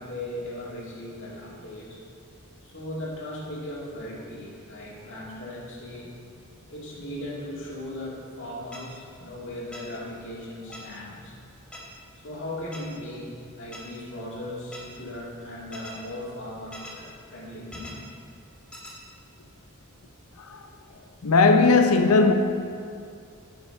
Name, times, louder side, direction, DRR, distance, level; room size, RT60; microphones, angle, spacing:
voice 1, 0.0-2.0 2.6-6.1 6.7-11.4 12.2-17.9, left 1 dB, 60° left, 2.1 m, -38 dB
sound 1, 8.7-8.8 9.7-9.8 10.7-10.8 11.7-11.8 12.7-12.8 13.7-13.8 14.7-14.8 15.7-15.9 16.7-16.9 17.7-17.9 18.7-18.9, left 1 dB, 5° left, 1.3 m, -41 dB
voice 2, 21.2-22.3, left 3 dB, 85° left, 0.7 m, -18 dB
10.0 x 5.9 x 4.5 m
head